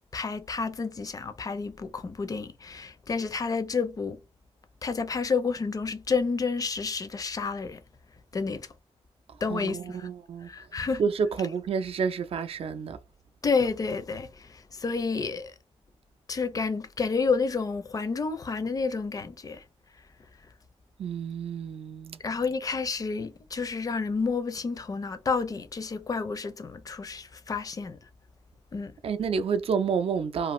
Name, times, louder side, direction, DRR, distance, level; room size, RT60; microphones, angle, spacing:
voice 1, 0.1-4.2 4.8-7.8 8.3-8.7 9.4-10.1 10.5-11.0 13.4-15.5 16.3-19.6 22.2-28.0 28.7-28.9, left 4 dB, 35° left, 0.4 m, -30 dB
voice 2, 9.3-10.7 11.0-13.0 21.0-22.2 29.0-30.5, right 6 dB, 60° right, 0.4 m, -29 dB
2.5 x 2.4 x 3.0 m
wide cardioid pair, 125°, 11 cm